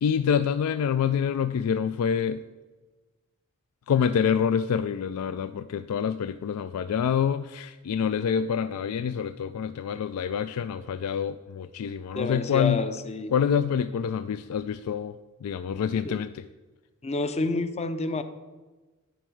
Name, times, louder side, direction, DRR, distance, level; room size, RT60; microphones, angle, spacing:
voice 1, 0.0-2.4 3.9-12.8 13.3-15.1 15.4-16.4, left 7 dB, 85° left, 12 dB, 0.3 m, -26 dB
voice 2, 12.1-13.3 16.0-16.2 17.0-18.2, left 3 dB, 30° left, 11 dB, 0.5 m, -29 dB
11.0 x 4.6 x 6.3 m, 1.2 s
head